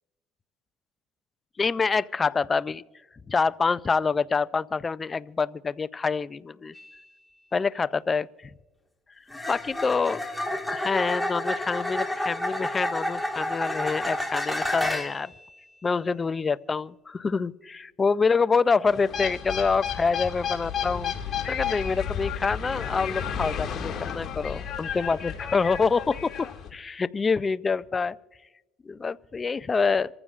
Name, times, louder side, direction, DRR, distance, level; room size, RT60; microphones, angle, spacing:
voice 1, 1.6-2.8 3.3-6.7 7.5-8.3 9.5-10.2 10.7-15.3 15.8-21.1 21.5-28.2 28.9-30.1, left 4 dB, 25° left, 17 dB, 0.4 m, -26 dB
sound 1, 6.8-7.0 9.3-15.3 18.9-19.2, left 1 dB, 5° left, 1.6 m, -30 dB
sound 2, 18.9-26.7, left 8 dB, 45° left, 2.0 m, -32 dB
27.0 x 14.5 x 2.4 m, 1.1 s
supercardioid pair, 95°, 0 cm